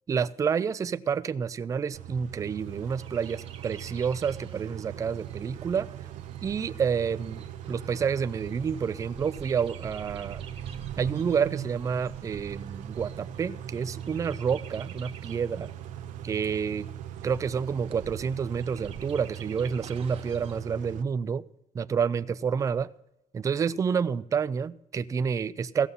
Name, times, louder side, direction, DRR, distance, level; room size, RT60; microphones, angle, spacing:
voice 1, 0.1-5.9 6.4-10.4 11.0-15.7 16.2-16.9 17.2-21.4 21.7-22.9 23.3-25.9, right 6 dB, 25° right, 0.4 m, -29 dB
Car / Idling / Accelerating revving vroom, 1.9-21.0, right 11 dB, 65° right, 0.6 m, -40 dB
Chirp tweet, 2.6-20.6, right 8 dB, 45° right, 0.9 m, -49 dB
15.5 x 7.0 x 5.5 m
cardioid pair, 140°, 14 cm